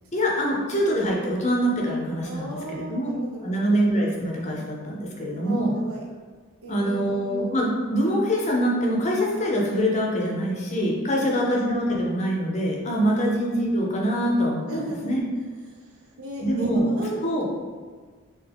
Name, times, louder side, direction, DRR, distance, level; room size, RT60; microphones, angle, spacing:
voice 1, 0.1-3.1 3.4-5.7 6.7-15.2 16.4-16.9 17.2-17.5, equal, 30° left, -2 dB, 0.6 m, -24 dB
voice 2, 2.2-3.7 5.3-6.1 6.6-7.6 11.1-11.5 13.1-13.2 14.7-15.2 15.7-17.5, right 1 dB, 85° right, -3 dB, 0.9 m, -36 dB
3.6 x 2.8 x 3.4 m, 1.5 s
head